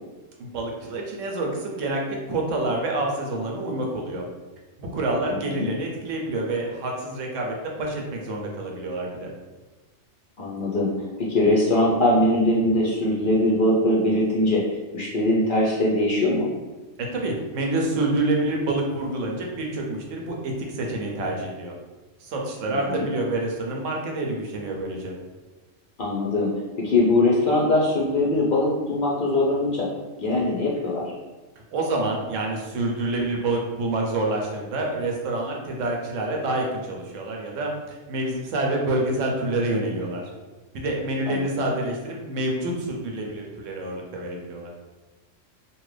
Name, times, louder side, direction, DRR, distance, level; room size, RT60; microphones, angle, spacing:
voice 1, 0.4-4.2 4.8-9.3 17.1-21.7 22.2-25.1 31.7-40.2 40.7-44.7, right 2 dB, 80° right, 0 dB, 1.0 m, -27 dB
voice 2, 5.3-5.7 10.4-14.6 14.9-16.5 22.7-23.1 26.0-26.5 26.8-29.9 30.2-31.1 41.3-41.5, left 1 dB, 55° left, -3 dB, 0.6 m, -22 dB
2.8 x 2.6 x 3.2 m, 1.2 s
omnidirectional pair, 1.3 m